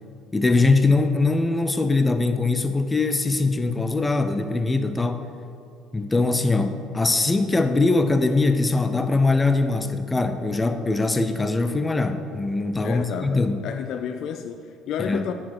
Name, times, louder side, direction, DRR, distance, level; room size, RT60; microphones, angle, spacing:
voice 1, 0.3-5.2 5.9-13.6 15.0-15.2, left 3 dB, 20° left, 8 dB, 0.7 m, -22 dB
voice 2, 12.8-15.3, left 8 dB, 60° left, 8 dB, 0.4 m, -31 dB
9.1 x 5.0 x 6.2 m, 2.4 s
hypercardioid pair, 60°, 0 cm